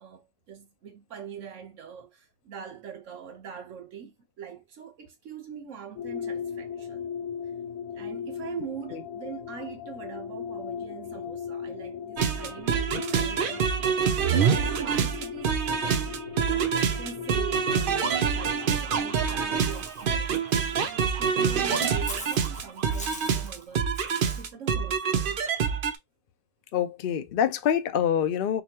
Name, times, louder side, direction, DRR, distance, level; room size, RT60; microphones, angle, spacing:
voice 1, 0.0-7.1 7.9-13.6 14.4-15.5 15.8-16.2 16.9-20.4 20.9-23.9 24.2-25.3, right 7 dB, 75° right, 1.1 m, -42 dB
sound 1, 6.0-19.8, left 7 dB, 90° left, 1.0 m, -38 dB
sound 2, 12.2-26.0, right 6 dB, 55° right, 0.6 m, -26 dB
Walk footsteps / Bird, 19.7-24.4, equal, 10° left, 0.4 m, -43 dB
voice 2, 26.7-28.6, left 9 dB, 60° left, 0.6 m, -25 dB
4.8 x 2.3 x 2.9 m
omnidirectional pair, 1.3 m